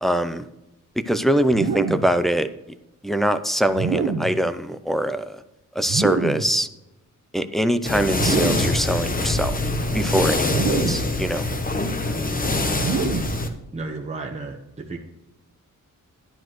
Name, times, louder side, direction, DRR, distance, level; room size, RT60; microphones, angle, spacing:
voice 1, 0.0-0.4 1.1-2.5 3.0-5.4 5.7-6.7 7.3-9.6 9.9-11.5, right 1 dB, ahead, 9 dB, 0.5 m, -23 dB
sound 1, 1.5-2.2 3.7-4.4 5.8-6.6 8.1-8.8 10.4-11.2 12.7-13.5, right 5 dB, 85° right, 1.1 m, -26 dB
sound 2, 7.9-13.5, left 2 dB, 25° left, 1.0 m, -24 dB
voice 2, 13.7-15.0, right 3 dB, 20° right, -1 dB, 1.1 m, -33 dB
11.5 x 10.0 x 3.1 m, 0.91 s
wide cardioid pair, 120°, 32 cm